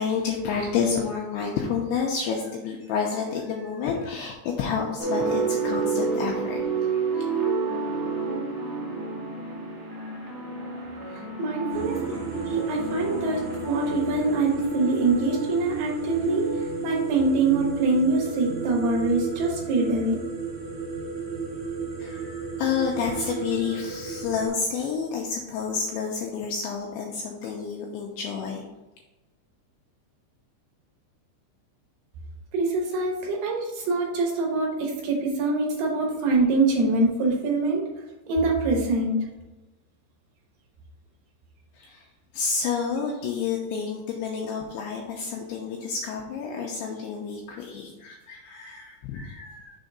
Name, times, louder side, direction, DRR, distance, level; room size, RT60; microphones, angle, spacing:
voice 1, 0.0-6.6 22.0-28.7 41.7-42.1 42.3-49.7, left 6 dB, 85° left, -1 dB, 2.4 m, -29 dB
sound 1, 5.0-18.3, right 4 dB, 40° right, 1.0 m, -30 dB
voice 2, 11.1-12.2 12.5-20.1 32.5-37.9 38.3-39.2, right 3 dB, 70° right, -1 dB, 2.7 m, -24 dB
sound 2, 11.7-24.5, right 4 dB, 90° right, 1.2 m, -33 dB
6.8 x 3.6 x 5.3 m, 1.1 s
omnidirectional pair, 5.4 m